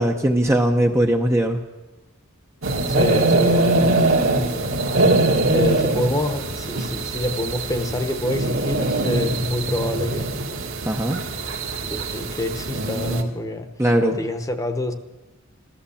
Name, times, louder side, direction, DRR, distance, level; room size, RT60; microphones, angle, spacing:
voice 1, 0.0-1.6 10.9-11.2 13.8-14.2, right 1 dB, 10° right, 3 dB, 0.7 m, -19 dB
sound 1, 2.6-13.2, right 2 dB, 65° right, 1.7 m, -22 dB
voice 2, 2.9-5.0 5.5-10.3 11.9-13.7 14.0-14.9, left 1 dB, 15° left, 7 dB, 1.0 m, -27 dB
15.0 x 13.0 x 7.1 m, 1.1 s
head